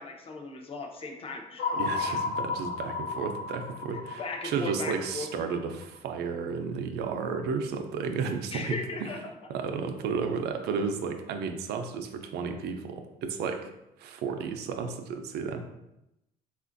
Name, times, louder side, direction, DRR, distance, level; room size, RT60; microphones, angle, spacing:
voice 1, 0.0-2.2 3.9-5.3 8.5-9.2, left 3 dB, 35° left, 3 dB, 0.5 m, -38 dB
sound 1, 1.6-5.8, left 4 dB, 90° left, 0.4 m, -33 dB
voice 2, 1.8-9.1 9.5-13.7 14.0-15.6, right 5 dB, 75° right, 6 dB, 0.4 m, -33 dB
3.6 x 2.4 x 2.5 m, 0.89 s
cardioid pair, 110°, 17 cm